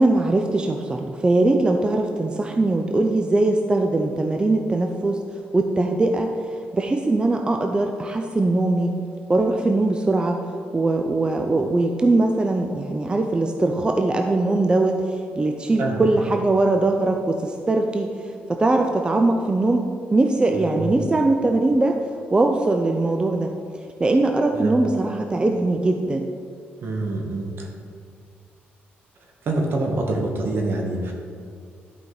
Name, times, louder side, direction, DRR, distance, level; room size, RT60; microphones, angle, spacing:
voice 1, 0.0-5.2 5.5-6.3 6.7-8.9 9.3-10.4 10.7-22.0 22.3-23.5 24.0-26.3, right 2 dB, 20° right, 4 dB, 0.5 m, -21 dB
voice 2, 20.5-21.0 24.5-24.8 26.8-27.7 29.4-31.1, right 2 dB, 60° right, 1 dB, 1.6 m, -26 dB
11.5 x 5.0 x 4.0 m, 2.3 s
cardioid pair, 90°, 4 cm